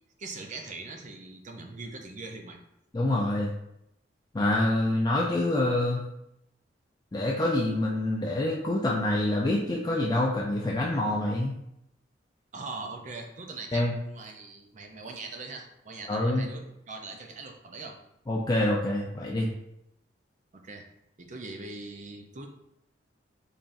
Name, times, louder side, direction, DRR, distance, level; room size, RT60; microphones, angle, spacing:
voice 1, 0.2-2.6 12.5-18.0 20.5-20.9 21.2-22.5, right 3 dB, 40° right, 3 dB, 0.5 m, -41 dB
voice 2, 2.9-3.5 4.3-6.0 7.1-11.5 13.7-13.9 16.1-16.5 18.3-19.5, left 1 dB, 20° left, -3 dB, 0.4 m, -26 dB
4.1 x 3.5 x 2.5 m, 0.80 s
head